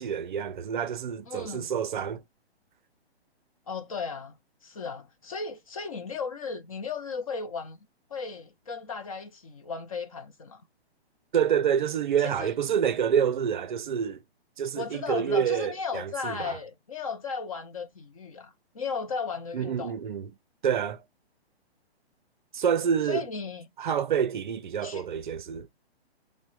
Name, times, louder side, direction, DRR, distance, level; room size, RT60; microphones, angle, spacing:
voice 1, 0.0-2.2 11.3-14.2 14.6-16.6 19.5-20.3 20.6-21.0 22.5-23.2 23.8-25.7, right 8 dB, 50° right, 0.5 m, -27 dB
voice 2, 1.3-1.7 3.7-4.3 4.6-7.8 8.1-10.6 12.2-12.5 14.8-19.9 23.0-23.6 24.8-25.1, left 5 dB, 35° left, 0.4 m, -35 dB
5.9 x 2.1 x 2.3 m
hypercardioid pair, 150°, 33 cm